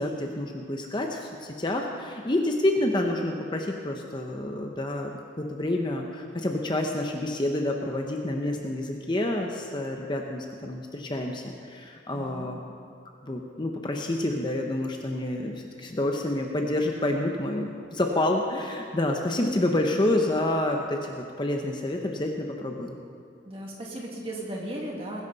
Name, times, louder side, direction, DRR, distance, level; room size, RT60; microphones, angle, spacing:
voice 1, 0.0-12.6 13.2-15.5 15.8-23.0, left 1 dB, 25° left, 2 dB, 0.8 m, -28 dB
voice 2, 12.1-12.5 23.4-25.3, right 1 dB, 30° right, -2 dB, 2.2 m, -36 dB
20.5 x 11.0 x 4.1 m, 2.3 s
head